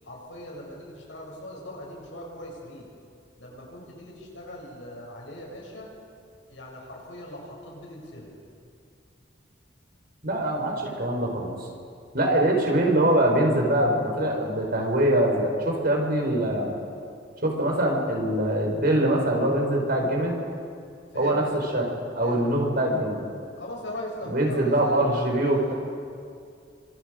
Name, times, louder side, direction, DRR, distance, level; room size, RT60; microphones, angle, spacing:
voice 1, 0.0-2.9 3.4-5.9 6.5-8.3 21.1-21.6 22.2-22.5 23.6-25.7, left 1 dB, 80° left, -2 dB, 7.7 m, -40 dB
voice 2, 10.2-11.5 12.1-16.7 17.4-20.4 21.1-21.4 21.7-21.9 22.1-23.2 24.2-25.7, right 1 dB, 55° right, 1 dB, 4.9 m, -23 dB
29.5 x 26.0 x 5.2 m, 2.4 s
head